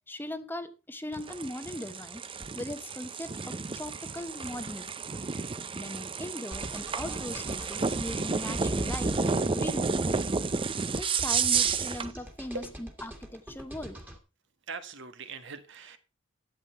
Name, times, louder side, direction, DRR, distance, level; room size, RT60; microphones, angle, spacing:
voice 1, 0.1-2.3 2.5-4.9 5.7-9.2 9.5-10.1 10.9-14.0, left 1 dB, 10° left, 0.9 m, -39 dB
sound 1, 1.1-12.1, right 5 dB, 25° right, 0.5 m, -31 dB
sound 2, 6.5-14.2, equal, 10° right, 1.9 m, -42 dB
voice 2, 12.5-12.9 14.7-16.0, right 4 dB, 60° right, 1.3 m, -41 dB
12.0 x 8.3 x 4.5 m
head